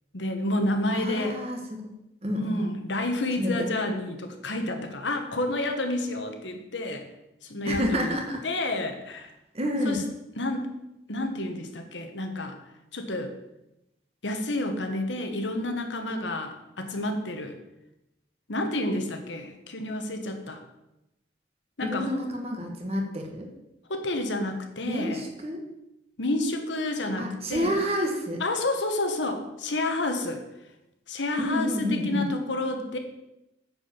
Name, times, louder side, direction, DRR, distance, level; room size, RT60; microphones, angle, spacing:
voice 1, 0.1-1.4 2.4-7.0 7.4-8.1 8.4-9.3 9.8-10.0 10.4-10.7 11.1-12.6 12.9-13.3 14.2-17.6 18.5-20.6 21.8-22.2 23.9-25.2 26.2-27.7 28.4-30.4 31.1-33.0, left 1 dB, 80° left, 5 dB, 1.3 m, -29 dB
voice 2, 0.9-1.9 2.2-2.6 3.4-3.7 7.6-8.4 9.5-10.0 21.8-23.5 24.8-25.6 27.2-28.4 31.4-32.3, equal, 35° right, 2 dB, 1.4 m, -29 dB
9.3 x 5.0 x 6.8 m, 0.90 s
head